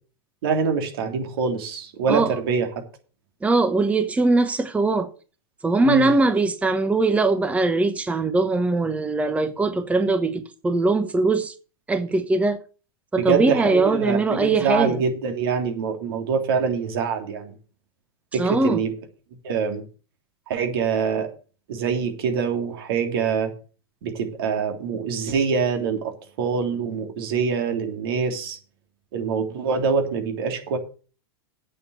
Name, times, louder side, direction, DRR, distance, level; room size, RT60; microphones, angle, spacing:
voice 1, 0.4-2.7 5.8-6.1 13.2-17.5 18.3-18.9 19.4-19.8 20.5-21.3 21.7-23.5 24.0-26.1 26.4-28.6 29.1-30.8, right 6 dB, 65° right, 3.1 m, -24 dB
voice 2, 2.1-2.4 3.4-5.1 5.6-11.5 11.9-12.6 13.1-15.0 18.3-18.8, right 3 dB, 10° right, 1.0 m, -21 dB
8.6 x 7.0 x 8.1 m
hypercardioid pair, 105°, 13 cm